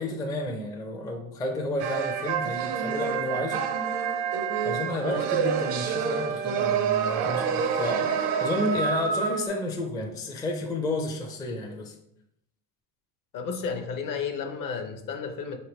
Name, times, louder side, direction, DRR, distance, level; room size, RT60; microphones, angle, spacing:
voice 1, 0.0-3.7 4.6-11.9, left 1 dB, 10° left, 1 dB, 0.4 m, -31 dB
sound 1, 1.8-9.5, right 7 dB, 80° right, 0.7 m, -27 dB
voice 2, 13.3-15.6, left 5 dB, 50° left, 6 dB, 0.8 m, -32 dB
4.5 x 3.2 x 3.0 m, 0.75 s
supercardioid pair, 105°, 42 cm